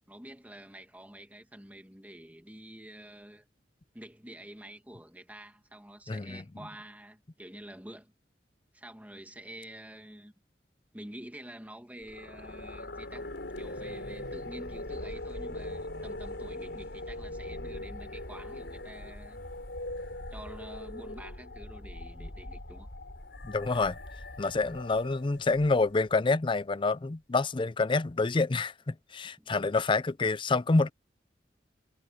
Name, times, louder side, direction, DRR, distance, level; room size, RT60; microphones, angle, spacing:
voice 1, 0.1-3.5 3.9-8.1 8.7-10.3 10.9-19.4 20.3-22.9 29.4-29.5, right 1 dB, 10° right, 2.3 m, -48 dB
voice 2, 6.1-6.4 22.2-22.3 23.4-24.0 24.4-30.9, left 3 dB, 30° left, 0.5 m, -27 dB
sound 1, 12.0-26.1, left 1 dB, 75° left, 4.5 m, -41 dB
head